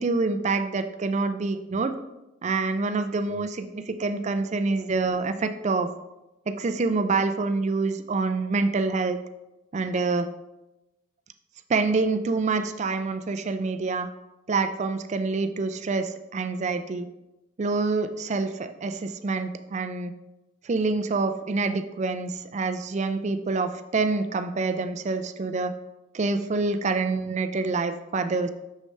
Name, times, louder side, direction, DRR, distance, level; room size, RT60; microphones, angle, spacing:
voice 1, 0.0-2.0 2.4-5.9 6.5-9.2 9.7-10.3 11.7-14.1 14.5-17.1 17.6-20.1 20.6-25.7 26.1-28.5, right 3 dB, 30° right, 9 dB, 0.3 m, -26 dB
6.5 x 6.3 x 3.3 m, 0.98 s
head